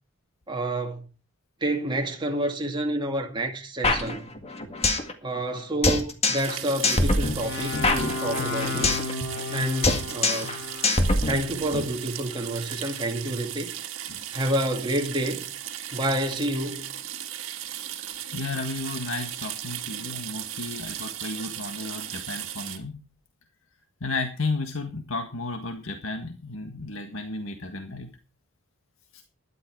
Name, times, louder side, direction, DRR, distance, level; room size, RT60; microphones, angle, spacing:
voice 1, 0.5-1.1 1.6-4.3 5.2-8.9 9.5-10.5 11.2-13.7 14.3-15.5 15.9-16.9, right 1 dB, 20° right, 2.4 m, -29 dB
sound 1, 3.8-5.1 5.4-5.5 5.8-6.6 6.8-9.1 9.4-9.6 9.8-10.6 10.8-11.8, left 2 dB, 30° left, 1.9 m, -24 dB
sound 2, 6.4-22.8, right 11 dB, 65° right, 2.2 m, -36 dB
sound 3, 7.4-11.0, left 4 dB, 50° left, 1.9 m, -33 dB
voice 2, 18.3-23.0 24.0-28.1 29.1-29.2, left 3 dB, 70° left, 1.7 m, -33 dB
13.0 x 11.0 x 4.7 m
head